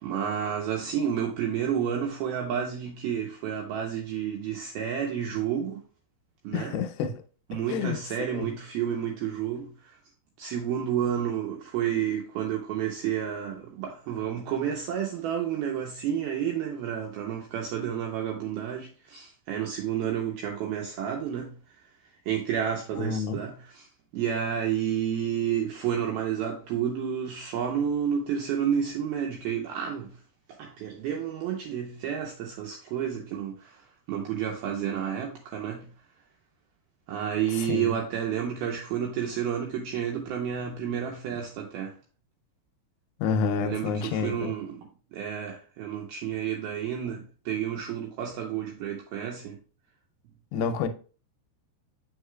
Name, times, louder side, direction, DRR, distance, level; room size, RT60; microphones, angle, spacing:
voice 1, 0.0-5.8 6.4-6.8 7.5-10.0 10.4-21.6 22.3-23.9 24.1-30.1 30.5-35.9 37.1-42.0 43.6-44.9 45.1-49.6, right 9 dB, 80° right, 2.3 m, -30 dB
voice 2, 6.5-7.2 7.7-8.0 8.3-8.5 22.9-23.4 37.5-37.9 43.2-44.5 50.5-50.9, left 6 dB, 80° left, 2.7 m, -29 dB
7.9 x 5.7 x 2.2 m
omnidirectional pair, 5.2 m